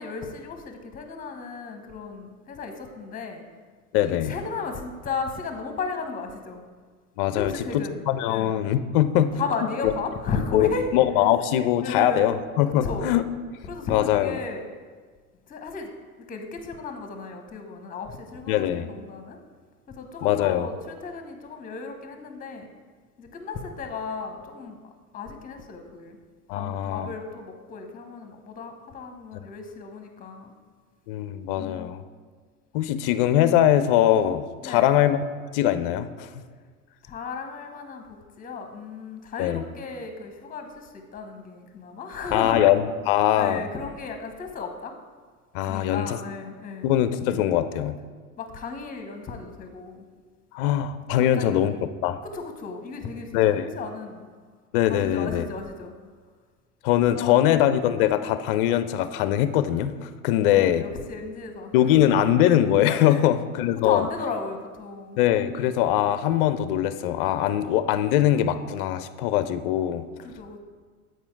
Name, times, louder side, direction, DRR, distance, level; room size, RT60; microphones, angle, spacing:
voice 1, 0.0-3.4 4.0-6.6 7.4-8.5 9.3-10.9 11.8-12.3 12.7-13.1 13.7-14.7 15.5-15.9 16.2-19.4 20.0-22.7 23.2-24.8 25.1-26.2 26.5-30.5 31.6-31.9 34.6-34.9 37.0-42.6 43.3-44.9 45.6-46.9 48.4-50.1 51.4-51.6 52.2-54.3 54.9-55.9 56.9-57.4 60.3-62.0 63.1-63.3 63.8-65.2 70.2-70.6, left 4 dB, 20° left, 6 dB, 0.9 m, -35 dB
voice 2, 3.9-4.3 7.2-7.5 8.1-9.3 9.8-9.9 10.5-13.3 13.9-14.4 18.5-18.9 20.2-20.7 26.5-27.1 31.1-32.0 32.7-35.2 35.5-36.4 39.4-39.6 42.3-43.6 45.5-46.2 46.8-47.9 50.5-51.7 52.0-52.2 53.3-53.7 54.7-55.5 56.8-60.8 61.7-64.0 65.2-70.0, left 11 dB, 40° left, 12 dB, 0.4 m, -22 dB
8.7 x 4.6 x 4.6 m, 1.5 s
figure-of-eight pair, 80°, 45 cm